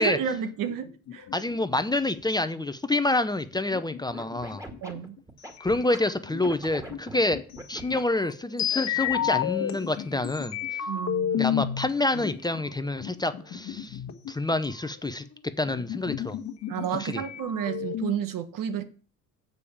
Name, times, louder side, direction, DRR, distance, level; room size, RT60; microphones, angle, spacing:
voice 1, 0.0-1.3 4.8-5.1 10.9-11.5 16.7-18.8, right 9 dB, 65° right, 1.3 m, -31 dB
sound 1, 0.6-2.4 3.5-5.2 6.2-8.2 9.2-10.7 12.1-12.7 13.0-14.6 15.6-17.2, left 9 dB, 75° left, 1.7 m, -40 dB
sound 2, 1.2-1.9 5.6-6.9 7.8-9.7 10.2-11.9 12.7-14.1 14.6-14.7 14.9-16.3 16.8-16.9 17.1-18.1, left 10 dB, 50° left, 1.3 m, -31 dB
voice 2, 1.3-4.6 5.6-7.4 7.7-10.6 11.4-14.0 14.3-15.2 15.6-16.4 17.0-17.2, left 2 dB, 10° left, 0.7 m, -27 dB
Scratching (performance technique), 4.1-6.0 6.4-8.0 8.7-9.3, right 1 dB, 10° right, 2.1 m, -41 dB
6.8 x 5.1 x 7.2 m
supercardioid pair, 70°, 35 cm